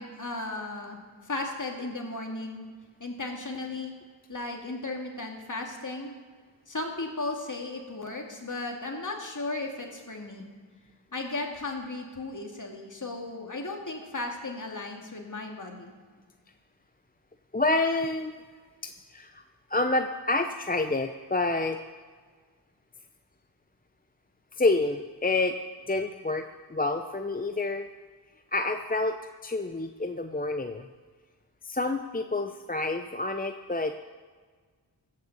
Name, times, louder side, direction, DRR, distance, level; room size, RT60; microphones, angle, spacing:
voice 1, 0.0-2.7 3.0-3.9 4.3-6.1 6.7-10.5 11.1-15.9, left 2 dB, 45° left, 1 dB, 2.5 m, -35 dB
voice 2, 17.5-18.3 18.8-19.4 19.7-21.8 24.6-25.6 25.9-26.4 26.7-27.9 28.5-29.1 29.4-30.9 31.6-33.9, left 2 dB, 20° left, 6 dB, 0.7 m, -28 dB
16.0 x 6.6 x 7.2 m, 1.5 s
cardioid pair, 45°, 42 cm